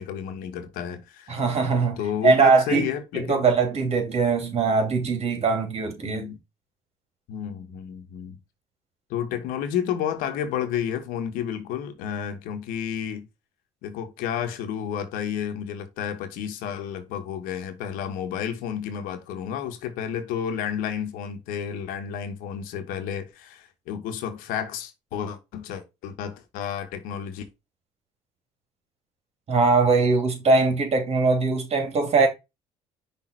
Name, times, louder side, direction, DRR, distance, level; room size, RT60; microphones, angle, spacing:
voice 1, 0.0-1.4 2.0-3.5 6.0-6.4 7.3-8.4 9.1-13.3 13.8-27.5, left 8 dB, 75° left, 1.2 m, -31 dB
voice 2, 1.3-2.9 3.1-6.2 29.5-32.3, right 4 dB, 45° right, 3.0 m, -21 dB
6.0 x 3.7 x 4.5 m
supercardioid pair, 75°, 15 cm